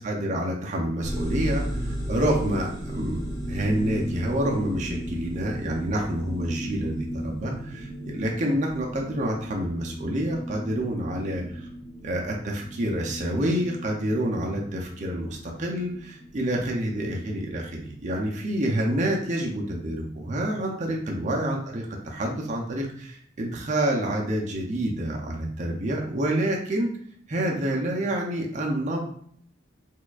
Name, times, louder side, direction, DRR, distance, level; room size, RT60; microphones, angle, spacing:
voice 1, 0.0-11.7 12.0-26.9 27.3-29.0, right 1 dB, 35° right, -1 dB, 0.5 m, -28 dB
sound 1, 1.0-20.4, equal, 25° left, 1.1 m, -36 dB
4.3 x 2.4 x 2.3 m, 0.62 s
head